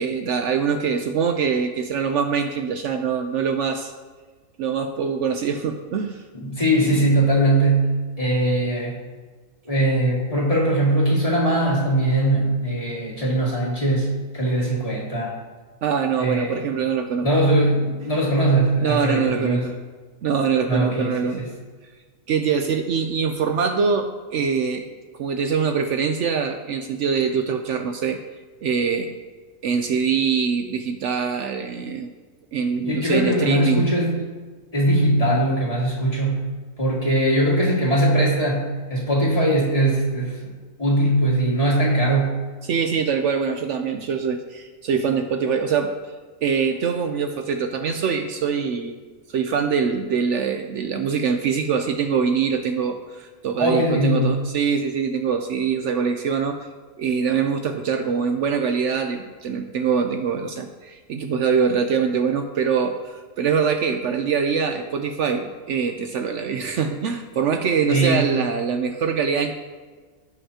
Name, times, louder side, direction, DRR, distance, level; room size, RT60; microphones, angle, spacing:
voice 1, 0.0-3.9 4.6-6.2 15.8-17.3 18.8-19.7 20.2-21.4 22.3-24.8 25.2-28.2 28.6-29.1 29.6-32.1 32.5-33.8 42.6-45.9 46.4-49.0 49.3-56.7 57.0-69.5, right 6 dB, 65° right, 6 dB, 0.9 m, -23 dB
voice 2, 6.3-9.0 9.7-15.4 16.2-16.6 17.2-19.7 20.7-21.5 32.8-34.2 34.7-36.4 36.8-40.4 40.8-42.4 53.6-54.3 67.9-68.3, right 1 dB, 25° left, -4 dB, 2.1 m, -21 dB
16.5 x 5.6 x 2.9 m, 1.4 s
omnidirectional pair, 1.4 m